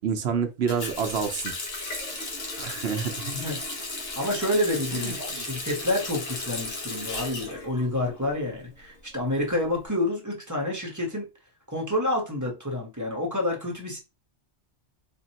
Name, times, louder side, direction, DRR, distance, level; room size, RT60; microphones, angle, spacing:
voice 1, 0.0-1.5 2.6-3.3 4.9-5.5, right 6 dB, 70° right, 0.9 m, -28 dB
Water tap faucet, 0.7-8.4 8.7-9.8, left 2 dB, 60° left, 1.3 m, -35 dB
voice 2, 4.1-11.2 11.7-14.0, left 1 dB, 15° right, 1.0 m, -28 dB
4.3 x 2.9 x 2.8 m
omnidirectional pair, 1.2 m